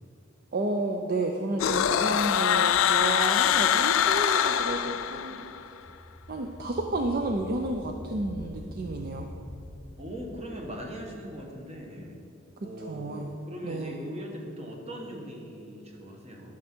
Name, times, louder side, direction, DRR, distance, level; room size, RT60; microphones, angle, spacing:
voice 1, 0.5-5.5 6.3-9.3 12.6-13.3 13.6-14.0, right 2 dB, 50° right, 3 dB, 0.5 m, -31 dB
sound 1, 1.6-5.6, left 9 dB, 80° left, 0.3 m, -24 dB
sound 2, 5.1-12.0, equal, 10° left, 0.7 m, -45 dB
voice 2, 10.0-12.2 12.6-16.5, equal, 30° right, 0 dB, 1.3 m, -40 dB
12.0 x 6.2 x 4.4 m, 2.5 s
head